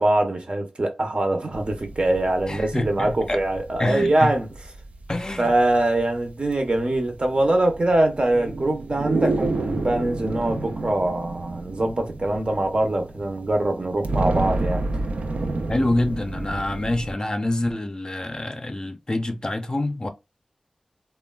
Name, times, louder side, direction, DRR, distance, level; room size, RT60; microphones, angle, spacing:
voice 1, 0.0-4.5 5.4-14.8, right 1 dB, 50° right, 0.7 m, -23 dB
sound 1, 1.5-17.1, right 2 dB, 90° right, 0.4 m, -31 dB
voice 2, 2.5-3.4 3.8-4.3 5.1-5.5 15.7-20.1, left 1 dB, 35° left, 0.4 m, -26 dB
3.1 x 2.2 x 2.2 m
wide cardioid pair, 55°, 2 cm